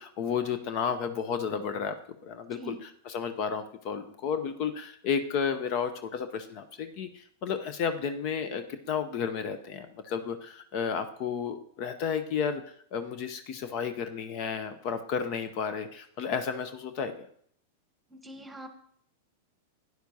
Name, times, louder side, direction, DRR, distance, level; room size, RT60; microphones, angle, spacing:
voice 1, 0.0-2.0 2.2-17.1, left 6 dB, 50° left, 9 dB, 0.7 m, -32 dB
voice 2, 2.5-2.8 18.1-18.7, right 2 dB, 10° right, 7 dB, 1.2 m, -42 dB
12.5 x 9.4 x 2.8 m, 0.62 s
hypercardioid pair, 105°, 0 cm